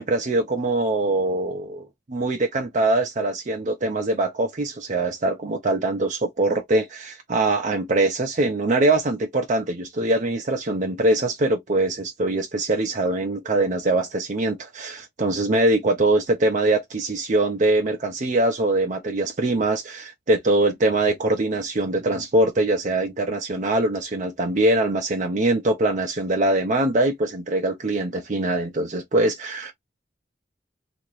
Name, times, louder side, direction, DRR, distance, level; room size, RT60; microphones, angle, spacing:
voice 1, 0.0-29.7, right 2 dB, 45° right, 0.5 m, -23 dB
2.8 x 2.5 x 3.1 m
head